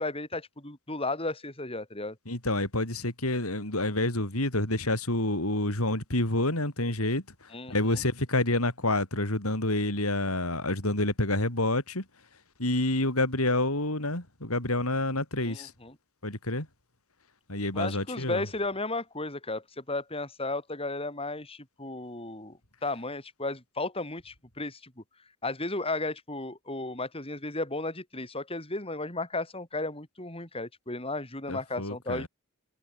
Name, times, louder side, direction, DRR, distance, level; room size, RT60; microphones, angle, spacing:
voice 1, 0.0-2.2 7.5-8.0 15.4-16.0 17.7-25.0 25.4-32.3, left 2 dB, 25° left, 7.5 m, -34 dB
voice 2, 2.3-7.2 7.7-12.0 12.6-15.7 16.2-16.7 17.5-18.4 31.5-32.3, left 2 dB, 85° left, 7.5 m, -28 dB
head